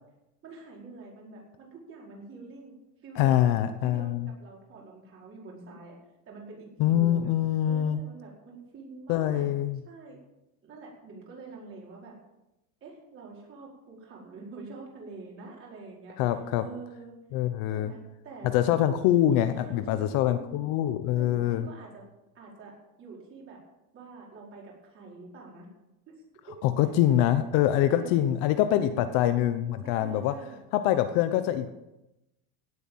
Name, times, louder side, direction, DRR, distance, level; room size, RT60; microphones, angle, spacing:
voice 1, 0.4-2.7 3.0-3.6 3.8-6.0 6.3-7.3 7.7-9.5 9.9-10.2 10.6-12.1 12.8-16.2 16.6-17.1 17.7-18.5 19.6-20.6 21.1-22.0 22.3-23.6 23.9-25.7 26.1-26.6 27.1-27.3 27.8-28.1 28.7-29.3 29.8-30.6, right 4 dB, 30° right, -3 dB, 5.0 m, -46 dB
voice 2, 3.2-4.3 6.8-8.0 9.1-9.8 16.2-16.6 17.3-17.9 18.5-21.7 26.6-30.3 30.7-31.7, left 12 dB, 50° left, 10 dB, 1.0 m, -24 dB
17.0 x 8.2 x 7.4 m, 0.94 s
cardioid pair, 165°, 43 cm